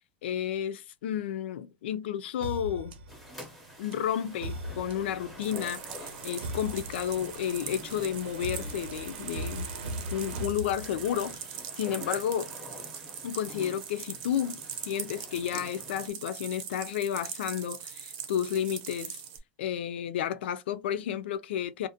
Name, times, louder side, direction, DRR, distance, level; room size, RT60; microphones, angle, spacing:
voice 1, 0.2-3.0 3.8-5.8 6.2-9.7 10.1-11.4 11.8-12.5 13.2-14.6 14.9-19.2 19.6-21.9, left 10 dB, 85° left, 0.3 m, -31 dB
sound 1, 2.4-11.2, right 1 dB, 85° right, 0.7 m, -40 dB
sound 2, 3.1-16.1, left 1 dB, ahead, 0.5 m, -48 dB
sound 3, 5.4-19.4, right 8 dB, 50° right, 0.6 m, -42 dB
2.4 x 2.1 x 2.6 m
supercardioid pair, 155°, 6 cm